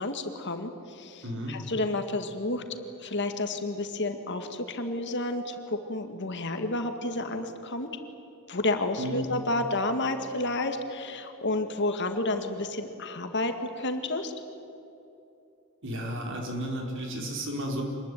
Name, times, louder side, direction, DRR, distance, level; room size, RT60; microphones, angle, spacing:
voice 1, 0.0-2.6 3.0-7.9 8.5-14.3, left 2 dB, 50° left, 6 dB, 2.1 m, -30 dB
voice 2, 1.2-1.6 9.0-9.3 15.8-17.8, equal, 55° right, 1 dB, 4.9 m, -33 dB
26.5 x 20.5 x 9.5 m, 2.8 s
head